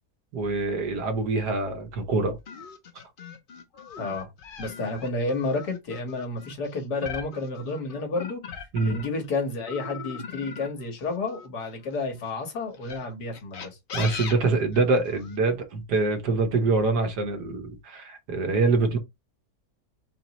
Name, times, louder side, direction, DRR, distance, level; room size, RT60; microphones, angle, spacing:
voice 1, 0.3-2.4 8.7-9.0 13.9-19.0, right 3 dB, 85° right, 1.6 m, -25 dB
sound 1, 2.5-9.3 9.7-12.0 12.7-15.4, left 6 dB, 55° left, 0.6 m, -40 dB
voice 2, 4.0-4.3 4.6-8.4 8.8-13.8, left 3 dB, 90° left, 1.9 m, -31 dB
4.3 x 3.0 x 4.1 m
omnidirectional pair, 1.7 m